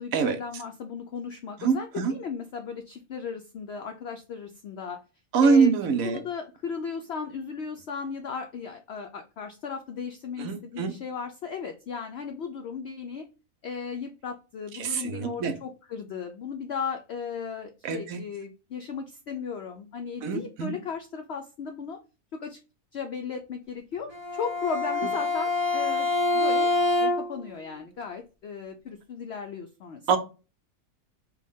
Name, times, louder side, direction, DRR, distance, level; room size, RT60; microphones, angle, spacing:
voice 1, 0.0-5.0 5.4-5.7 6.0-13.2 13.6-22.0 22.3-22.6 22.9-26.1 26.3-26.7 27.0-30.0, left 6 dB, 65° left, 0.6 m, -36 dB
voice 2, 1.6-2.1 5.3-6.2 10.4-10.9 14.8-15.5 17.8-18.2 20.2-20.8 30.1-30.2, right 5 dB, 70° right, 1.1 m, -24 dB
Bowed string instrument, 24.1-27.5, left 2 dB, 35° right, 0.4 m, -26 dB
4.7 x 2.3 x 3.5 m
omnidirectional pair, 1.5 m